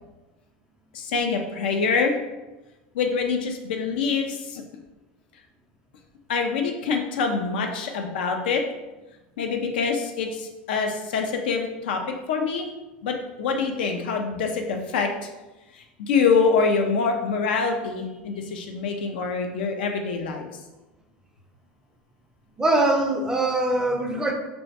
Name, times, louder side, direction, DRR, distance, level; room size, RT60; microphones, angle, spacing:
voice 1, 0.9-2.2 2.9-4.6 6.3-8.6 9.4-12.0 12.3-12.7 13.0-15.1 16.0-20.5, left 5 dB, 75° left, 4 dB, 0.3 m, -25 dB
voice 2, 22.6-24.3, right 2 dB, 10° right, 2 dB, 0.4 m, -22 dB
2.1 x 2.1 x 2.7 m, 1.1 s
hypercardioid pair, 90°, 5 cm